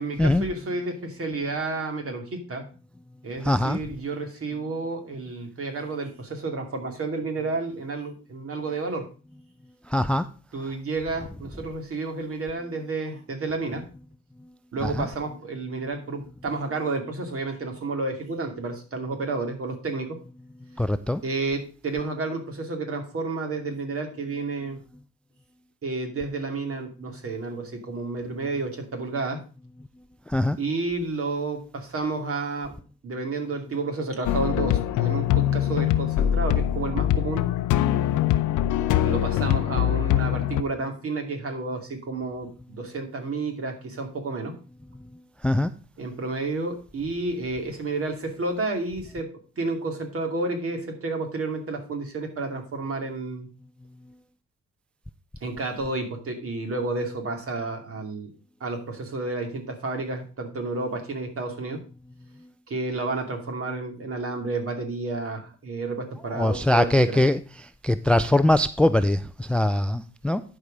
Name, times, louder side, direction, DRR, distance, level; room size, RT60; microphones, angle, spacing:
voice 1, 0.0-2.6 3.2-9.1 10.5-13.8 14.7-20.2 21.2-24.8 25.8-29.4 30.6-32.7 33.0-37.4 39.0-44.5 46.0-49.3 49.6-53.5 55.4-58.3 58.6-61.8 62.7-67.2, right 3 dB, 50° right, 2.7 m, -31 dB
voice 2, 3.4-3.8 9.9-10.3 14.8-15.1 20.8-21.2 30.3-30.6 45.4-45.7 66.4-70.4, left 1 dB, 5° left, 0.3 m, -22 dB
sound 1, 34.2-40.6, left 12 dB, 80° left, 0.7 m, -23 dB
11.5 x 4.9 x 5.2 m
cardioid pair, 90°, 30 cm